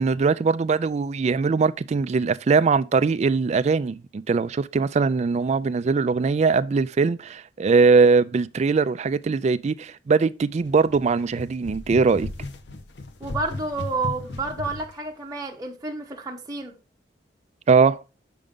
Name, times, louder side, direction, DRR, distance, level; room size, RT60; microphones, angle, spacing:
voice 1, 0.0-12.3 17.7-18.0, right 4 dB, 40° right, 0.3 m, -21 dB
sound 1, 10.6-14.9, left 2 dB, 65° left, 0.7 m, -36 dB
voice 2, 13.2-16.8, right 3 dB, 20° right, 0.8 m, -30 dB
6.8 x 5.1 x 3.5 m
head